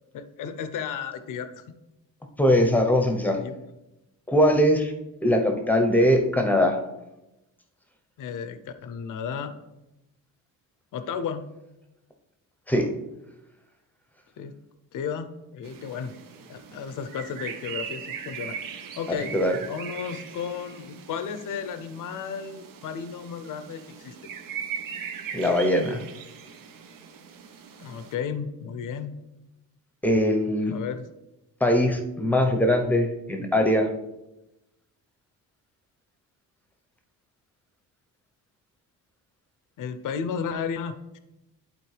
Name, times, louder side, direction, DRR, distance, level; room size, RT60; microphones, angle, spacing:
voice 1, 0.1-1.6 3.4-3.6 8.2-9.5 10.9-11.4 14.4-14.5 14.9-16.1 16.5-18.6 19.0-19.3 19.7-24.1 27.8-29.1 30.7-31.0 39.8-41.2, left 7 dB, 60° left, 11 dB, 0.6 m, -33 dB
voice 2, 2.4-3.4 4.3-4.9 5.2-6.8 12.7-12.9 19.3-19.6 25.3-26.0 30.0-30.8 31.6-33.9, equal, 5° left, 4 dB, 0.8 m, -21 dB
sound 1, 15.6-28.2, right 7 dB, 65° right, 0.8 m, -40 dB
11.5 x 4.2 x 3.3 m, 0.96 s
cardioid pair, 150°, 36 cm